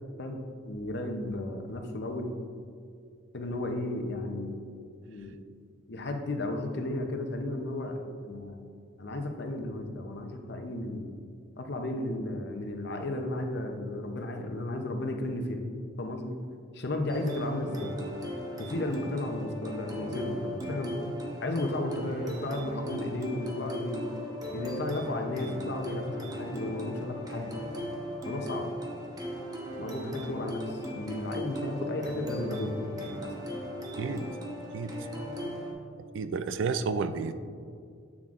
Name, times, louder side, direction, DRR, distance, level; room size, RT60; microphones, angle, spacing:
voice 1, 0.2-2.3 3.3-4.6 5.1-5.4 5.9-8.0 8.2-8.6 9.0-11.1 11.6-15.6 16.0-16.4 16.7-17.9 18.6-21.1 21.4-24.0 24.5-27.5 28.2-28.7 29.8-32.7 33.2-33.3, left 1 dB, 60° left, 4 dB, 0.7 m, -34 dB
sound 1, 17.1-35.7, equal, 20° right, 0.9 m, -38 dB
voice 2, 36.1-37.3, right 5 dB, 70° right, 11 dB, 0.4 m, -31 dB
7.4 x 7.4 x 2.5 m, 2.2 s
head